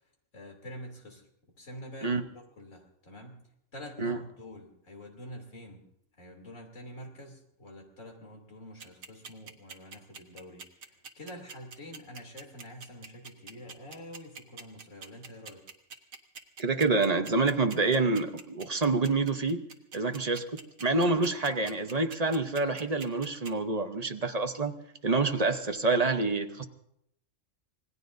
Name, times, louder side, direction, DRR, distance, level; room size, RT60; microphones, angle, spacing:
voice 1, 0.3-1.3 1.6-2.2 2.6-3.4 3.7-5.9 6.2-15.6, equal, 70° left, 1 dB, 3.4 m, -46 dB
sound 1, 8.8-23.5, right 5 dB, 80° right, 1.7 m, -44 dB
voice 2, 16.6-19.6 19.9-20.5 20.8-24.8 25.0-26.6, right 3 dB, 35° right, 7 dB, 0.9 m, -27 dB
26.5 x 19.5 x 2.7 m, 0.76 s
omnidirectional pair, 1.4 m